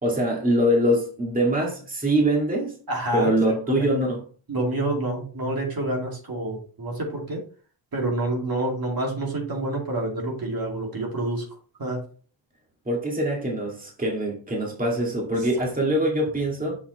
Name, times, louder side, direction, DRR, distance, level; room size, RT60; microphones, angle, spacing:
voice 1, 0.0-2.7 3.1-4.2 12.9-16.8, right 1 dB, 20° right, 2.1 m, -23 dB
voice 2, 2.9-3.3 3.8-3.9 4.5-7.4 7.9-11.4 11.8-12.0, right 2 dB, 50° right, 2.4 m, -27 dB
6.8 x 5.7 x 3.1 m
cardioid pair, 85°, 46 cm